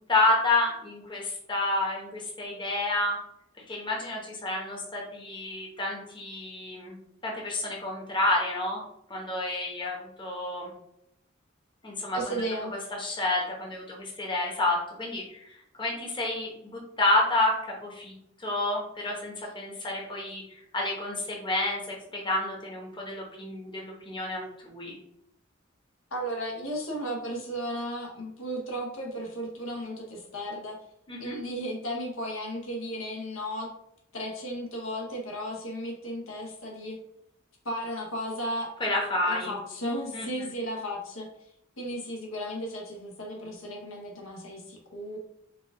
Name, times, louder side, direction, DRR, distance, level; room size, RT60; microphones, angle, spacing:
voice 1, 0.0-3.2 3.7-7.0 7.2-8.8 9.1-10.7 11.8-12.4 13.0-15.5 15.8-18.1 18.4-20.4 20.7-24.9 31.1-31.4 38.8-39.5 40.1-40.5, left 2 dB, 25° left, -2 dB, 0.9 m, -29 dB
voice 2, 12.1-12.7 26.1-30.8 31.2-33.7 34.1-37.0 37.6-38.7 39.3-41.3 41.8-45.2, equal, 85° left, 0 dB, 1.2 m, -34 dB
4.7 x 2.4 x 3.6 m, 0.76 s
head